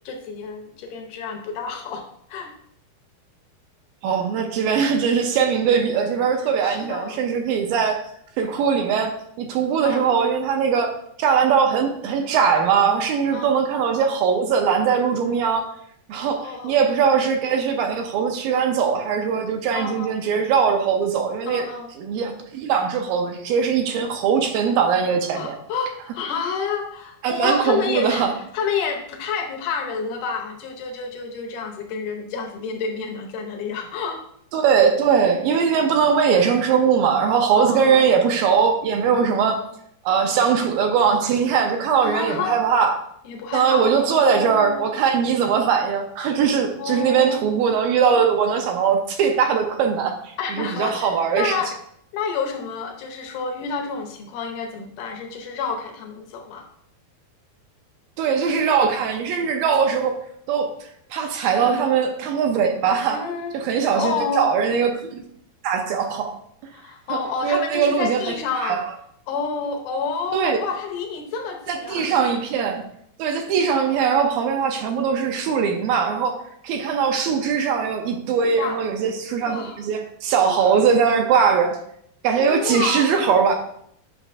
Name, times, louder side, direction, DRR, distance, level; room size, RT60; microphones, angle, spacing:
voice 1, 0.1-2.5 5.6-5.7 6.6-7.2 9.8-10.1 13.3-13.5 16.4-16.8 19.7-20.1 21.5-21.9 25.3-28.3 28.5-34.2 37.5-38.1 40.2-40.6 42.0-42.6 43.3-45.0 46.8-47.7 50.4-51.8 52.1-56.7 61.6-61.8 63.1-63.6 63.9-64.5 66.7-68.8 69.3-72.2 73.7-74.2 78.6-78.8 79.4-79.8 80.5-80.7 82.4-83.3, left 5 dB, 75° left, 3 dB, 1.9 m, -29 dB
voice 2, 4.0-8.0 8.4-10.9 11.2-15.7 16.1-21.7 22.0-25.6 27.2-28.3 34.5-39.7 40.1-43.0 43.5-51.6 58.2-60.2 60.5-63.2 63.5-65.2 65.6-66.3 67.1-68.3 68.6-68.8 70.3-70.6 71.7-72.8 73.2-81.8 82.2-83.6, right 6 dB, 80° right, 5 dB, 2.2 m, -21 dB
8.7 x 5.9 x 2.5 m, 0.69 s
omnidirectional pair, 4.4 m